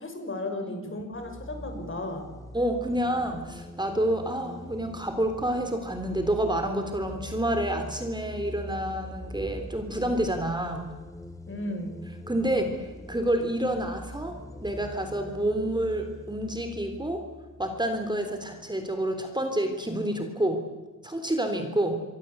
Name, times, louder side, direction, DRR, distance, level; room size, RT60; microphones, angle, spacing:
voice 1, 0.0-2.3 11.5-12.1, left 1 dB, 40° left, 6 dB, 6.1 m, -35 dB
sound 1, 1.1-18.5, left 1 dB, 10° left, 1.9 m, -43 dB
voice 2, 2.5-10.9 12.3-17.2 17.6-20.6 21.0-22.0, right 1 dB, 15° right, 5 dB, 3.5 m, -28 dB
27.0 x 23.5 x 8.1 m, 1.2 s
wide cardioid pair, 105°, 32 cm